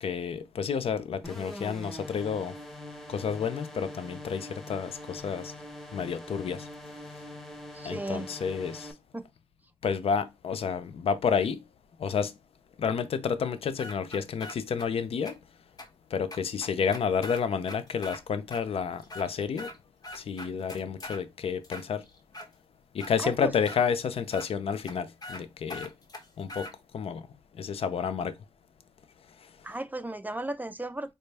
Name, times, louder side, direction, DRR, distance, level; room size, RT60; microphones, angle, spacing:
voice 1, 0.0-2.5 3.1-5.5 5.9-6.7 7.8-8.9 9.8-11.6 12.0-12.3 12.8-15.4 16.1-19.7 20.1-22.0 22.9-25.9 26.4-27.3 27.5-28.3, left 6 dB, 80° left, 0.5 m, -30 dB
sound 1, 1.2-8.9, left 1 dB, 5° left, 1.0 m, -43 dB
voice 2, 7.7-8.3 9.1-9.2 23.2-23.5 29.6-31.1, right 2 dB, 15° right, 0.5 m, -35 dB
sound 2, 13.8-14.9 15.3-15.4 15.8-15.9 16.3-18.2 18.5-18.6 19.0-19.8 20.0-21.2 21.6-22.5 23.0-23.1 23.7-23.8 24.3-24.5 24.8-24.9 25.2-25.4 25.7-26.7, left 1 dB, 40° left, 1.2 m, -41 dB
4.8 x 2.2 x 3.3 m
cardioid pair, 55°, 10 cm